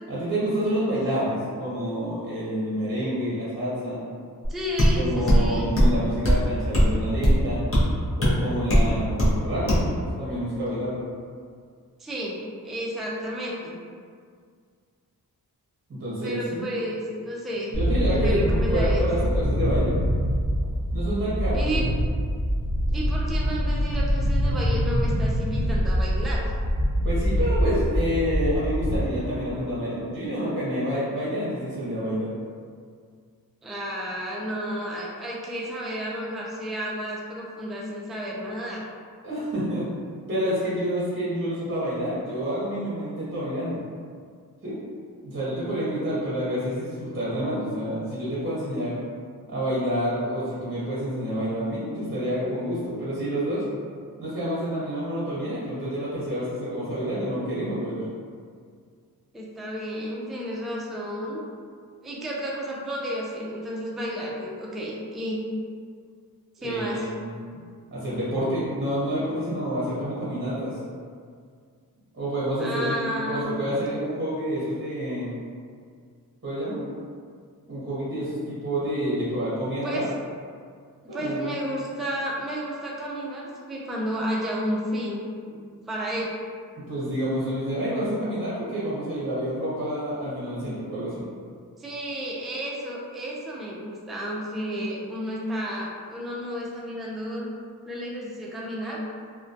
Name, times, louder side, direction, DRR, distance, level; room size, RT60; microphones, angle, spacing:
voice 1, 0.1-4.0 4.9-7.7 8.2-11.0 15.9-16.6 17.7-19.9 20.9-21.9 27.0-32.3 39.2-39.9 40.3-43.8 44.6-44.8 45.2-49.0 49.5-53.6 54.2-58.0 66.6-67.3 67.9-70.8 72.1-75.3 76.4-76.8 77.7-80.1 81.1-81.6 86.9-91.2, equal, 35° right, -9 dB, 0.7 m, -28 dB
sound 1, 4.4-4.5 4.8-4.9 5.3-5.4 5.8-6.0 6.2-6.4 6.7-6.9 7.2-7.4 7.7-7.8 8.2-8.3 8.7-8.9 9.2-9.3 9.7-9.9, equal, 35° left, 0.6 m, -18 dB
voice 2, 4.5-5.7 12.0-12.3 12.6-13.8 16.2-17.8 18.1-19.0 21.5-21.9 22.9-26.4 33.6-38.8 59.3-61.4 62.0-65.4 66.6-67.1 72.6-73.4 79.8-80.0 81.0-85.2 85.5-85.6 85.9-86.3 91.8-97.5 97.9-99.0, equal, ahead, -4 dB, 0.3 m, -32 dB
sound 2, 17.7-29.0, equal, 85° left, 0.7 m, -24 dB
2.2 x 2.2 x 2.6 m, 2.1 s
wide cardioid pair, 85°, 37 cm